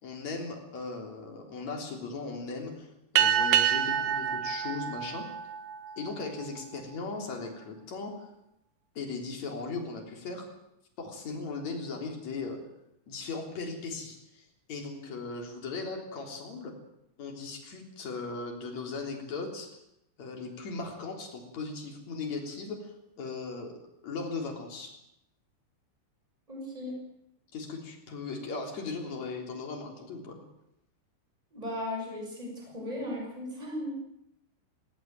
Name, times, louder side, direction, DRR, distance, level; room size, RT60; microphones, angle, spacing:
voice 1, 0.0-5.3 6.0-8.3 8.9-10.5 11.0-12.6 13.1-16.7 17.2-19.7 20.2-23.7 24.0-24.9 27.5-30.4, left 4 dB, 35° left, 2 dB, 4.3 m, -38 dB
sound 1, 3.2-6.1, right 9 dB, 65° right, 2.8 m, -27 dB
voice 2, 26.5-26.9 31.5-34.0, left 1 dB, 5° right, 1 dB, 6.6 m, -36 dB
18.5 x 18.5 x 9.1 m, 0.80 s
omnidirectional pair, 5.8 m